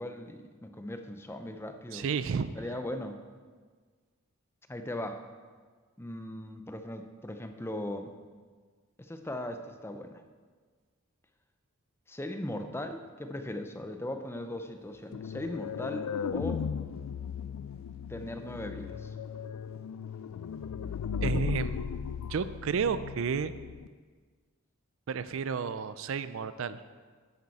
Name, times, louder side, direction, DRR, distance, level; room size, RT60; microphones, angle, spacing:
voice 1, 0.0-2.1 2.6-3.2 4.7-5.2 6.0-8.1 9.0-10.1 12.1-16.6 18.1-19.1, left 1 dB, 10° left, 7 dB, 0.5 m, -38 dB
voice 2, 1.9-2.5 21.2-23.5 25.1-26.8, right 6 dB, 65° right, 14 dB, 0.4 m, -32 dB
sound 1, 14.8-22.6, right 1 dB, 65° left, 1.8 m, -62 dB
sound 2, 15.1-23.9, left 7 dB, 85° left, 0.3 m, -36 dB
11.0 x 8.8 x 4.1 m, 1.5 s
head